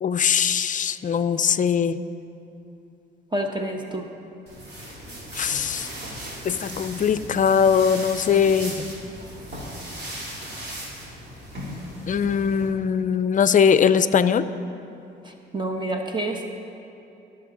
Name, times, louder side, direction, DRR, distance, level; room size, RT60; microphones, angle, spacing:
voice 1, 0.0-2.0 5.4-5.9 6.5-8.7 12.1-14.4, left 7 dB, 40° left, 13 dB, 0.5 m, -21 dB
voice 2, 3.3-4.0 15.5-16.5, right 1 dB, 25° right, 2 dB, 1.0 m, -28 dB
sound 1, 4.5-12.7, equal, 55° right, 3.1 m, -37 dB
21.0 x 7.1 x 3.9 m, 2.8 s
cardioid pair, 90°, 20 cm